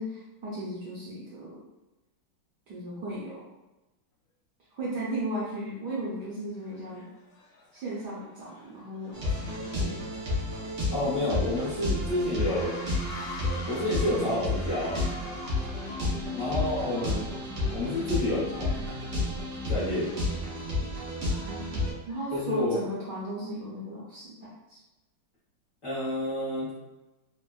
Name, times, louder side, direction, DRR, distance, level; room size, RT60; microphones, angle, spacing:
voice 1, 0.0-1.6 2.7-3.4 4.7-7.1 7.7-9.5 9.8-9.9 16.0-16.2 21.3-24.8, right 1 dB, 70° right, -7 dB, 1.0 m, -36 dB
sound 1, 5.2-5.3 6.0-6.3 6.6-22.6, left 2 dB, 90° left, 1.4 m, -47 dB
sound 2, 9.1-21.9, left 2 dB, 90° right, 0.6 m, -31 dB
voice 2, 10.9-12.8 13.7-15.0 16.3-17.2 17.7-18.8 19.7-20.1 22.3-22.8 25.8-26.7, left 1 dB, 50° left, -11 dB, 1.0 m, -29 dB
3.3 x 2.1 x 2.2 m, 1.0 s
omnidirectional pair, 2.2 m